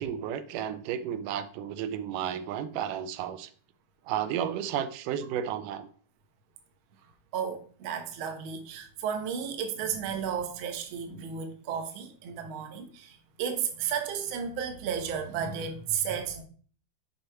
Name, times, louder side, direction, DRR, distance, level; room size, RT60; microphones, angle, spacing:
voice 1, 0.0-3.5 4.1-5.9, right 9 dB, 90° right, 2.2 m, -32 dB
voice 2, 7.3-16.4, right 7 dB, 70° right, 1.2 m, -33 dB
6.5 x 5.3 x 4.4 m
omnidirectional pair, 3.7 m